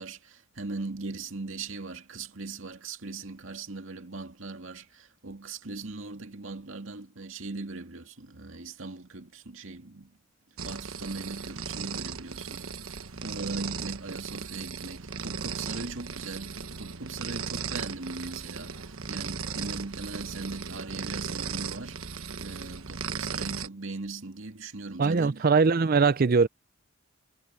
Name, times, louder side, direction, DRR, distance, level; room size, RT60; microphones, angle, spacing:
voice 1, 0.0-10.2 10.6-25.5, right 3 dB, 70° right, 2.3 m, -39 dB
sound 1, 10.6-23.7, right 5 dB, 85° right, 1.2 m, -37 dB
voice 2, 25.0-26.5, right 4 dB, 45° right, 0.5 m, -21 dB
head